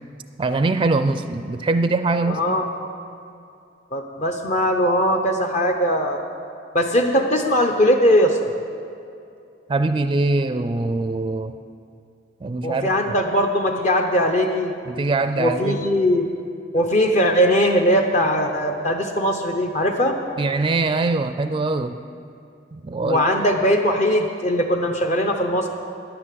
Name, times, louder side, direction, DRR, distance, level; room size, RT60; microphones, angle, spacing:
voice 1, 0.4-2.6 9.7-11.5 12.4-13.1 14.9-15.8 20.4-22.0 22.7-23.3, right 3 dB, 25° right, 9 dB, 0.4 m, -23 dB
voice 2, 2.3-2.6 3.9-6.2 6.7-8.4 12.6-14.7 15.3-16.3 16.7-20.1 23.0-25.7, equal, 40° left, 3 dB, 0.7 m, -20 dB
10.5 x 9.8 x 7.6 m, 2.6 s
head